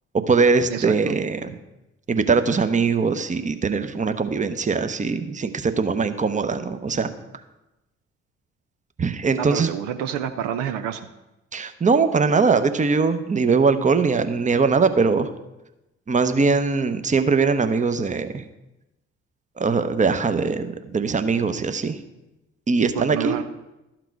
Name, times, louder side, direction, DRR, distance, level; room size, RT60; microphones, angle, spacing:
voice 1, 0.1-1.6 2.1-7.1 9.0-9.7 11.5-15.3 16.1-18.4 19.6-22.0 22.7-23.4, right 4 dB, 20° right, 10 dB, 0.8 m, -21 dB
voice 2, 0.7-1.2 9.4-11.1 22.8-23.4, right 9 dB, 70° right, 8 dB, 0.6 m, -28 dB
12.5 x 5.9 x 4.6 m, 0.97 s
figure-of-eight pair, 40°, 34 cm